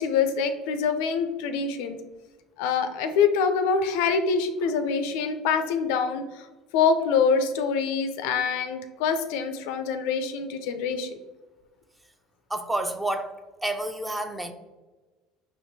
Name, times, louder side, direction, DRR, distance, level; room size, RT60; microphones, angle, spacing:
voice 1, 0.0-2.0 2.6-6.5 6.7-11.2, left 5 dB, 70° left, 8 dB, 0.3 m, -25 dB
voice 2, 12.5-13.3 13.6-14.5, right 1 dB, 10° right, 7 dB, 0.4 m, -29 dB
4.3 x 2.5 x 2.6 m, 1.2 s
hypercardioid pair, 65°, 0 cm